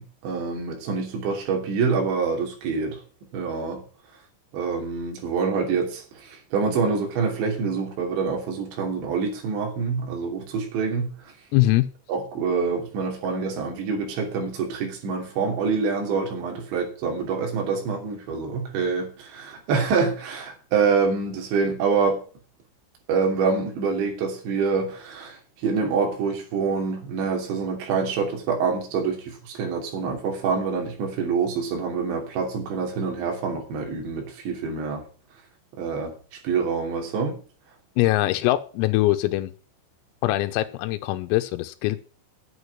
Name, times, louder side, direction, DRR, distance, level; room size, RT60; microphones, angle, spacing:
voice 1, 0.0-3.0 3.3-3.8 4.5-11.1 12.1-22.2 23.1-35.0 35.7-36.1 36.4-37.4, right 5 dB, 60° right, 1 dB, 5.1 m, -26 dB
voice 2, 11.5-11.9 38.0-39.5 40.2-42.0, left 17 dB, 90° left, 9 dB, 3.5 m, -22 dB
9.7 x 8.2 x 8.5 m, 0.39 s
omnidirectional pair, 5.9 m